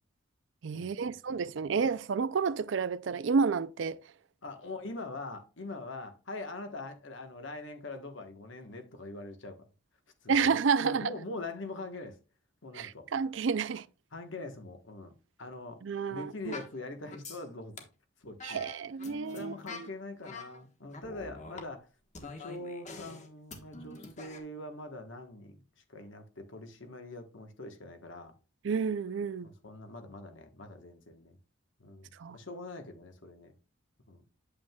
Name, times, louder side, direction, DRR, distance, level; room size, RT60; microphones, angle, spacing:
voice 1, 0.6-4.0 10.3-11.1 12.7-13.9 15.8-16.5 18.4-19.9 28.6-29.5 32.2-32.4, right 5 dB, 70° right, 0.4 m, -30 dB
voice 2, 4.4-9.6 10.2-12.2 12.6-13.1 14.1-15.1 15.4-15.8 16.1-17.9 18.2-18.6 19.3-21.9 22.2-25.6 25.9-28.3 29.4-31.4 31.8-33.5 34.1-34.2, left 2 dB, 75° left, 1.2 m, -43 dB
sound 1, 16.5-16.8 17.1-17.4 17.8-17.9 18.4-19.9 20.2-20.6 20.9-21.7 22.1-24.4, left 3 dB, 35° left, 1.2 m, -45 dB
8.5 x 7.6 x 2.3 m
head